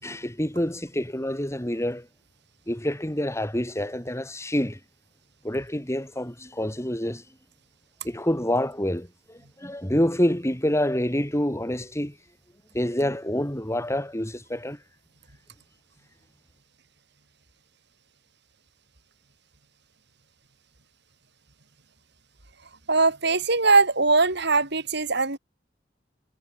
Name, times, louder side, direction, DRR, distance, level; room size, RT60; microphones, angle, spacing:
voice 1, 0.0-2.1 2.7-4.8 5.4-7.2 8.0-12.2 12.7-14.8, left 1 dB, 15° left, 6.9 m, -27 dB
voice 2, 22.9-25.4, right 3 dB, 60° right, 6.0 m, -21 dB
head